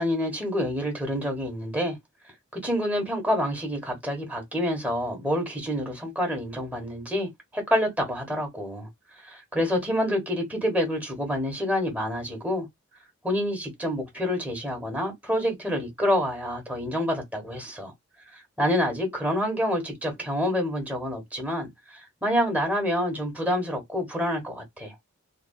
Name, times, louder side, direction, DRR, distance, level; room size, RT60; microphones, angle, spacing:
voice 1, 0.0-2.0 2.5-8.9 9.2-12.7 13.2-17.9 18.3-24.9, equal, 5° right, 1.1 m, -27 dB
3.0 x 2.3 x 2.2 m
head